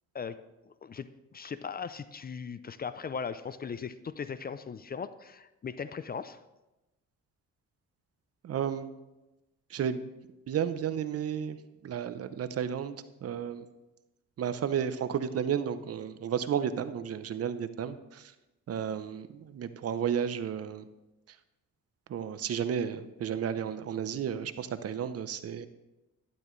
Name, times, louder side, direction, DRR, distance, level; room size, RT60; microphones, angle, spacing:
voice 1, 0.6-6.4, left 6 dB, 30° left, 14 dB, 0.5 m, -38 dB
voice 2, 8.4-8.9 9.7-10.0 10.5-11.6 11.8-13.7 14.4-18.3 18.7-20.9 22.1-25.7, right 8 dB, 50° right, 12 dB, 0.7 m, -32 dB
12.0 x 11.0 x 3.2 m, 1.0 s
cardioid pair, 90°, 30 cm